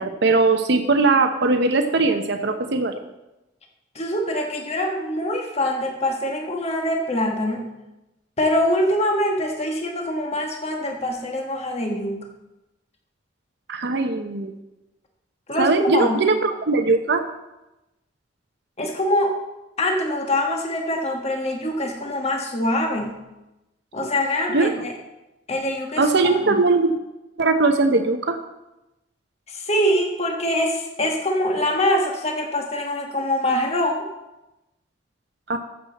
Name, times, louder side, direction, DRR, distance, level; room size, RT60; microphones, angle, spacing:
voice 1, 0.0-2.9 13.7-14.5 15.6-17.2 24.5-24.7 26.0-26.9 27.4-28.4 35.5-35.6, right 3 dB, 65° right, 6 dB, 0.8 m, -20 dB
voice 2, 3.9-7.7 8.4-12.2 15.5-16.3 18.8-19.3 19.8-23.2 23.9-24.9 25.5-26.1 26.4-26.6 29.5-34.1, left 1 dB, 35° left, 2 dB, 1.5 m, -24 dB
14.0 x 7.5 x 4.1 m, 0.97 s
head